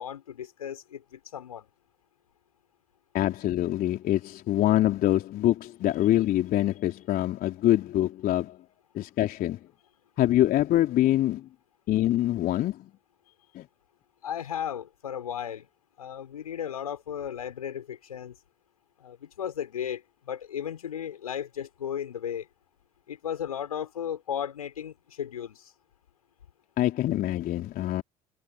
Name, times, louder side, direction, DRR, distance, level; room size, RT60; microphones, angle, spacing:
voice 1, 0.0-1.7 14.2-15.7 16.0-18.4 19.0-22.5 23.1-25.7, left 9 dB, 80° left, 6.0 m, -35 dB
voice 2, 3.1-8.6 8.9-9.6 10.2-11.5 11.9-12.9 13.6-13.7 26.8-28.0, left 14 dB, 50° left, 3.4 m, -25 dB
figure-of-eight pair, 55°, 19 cm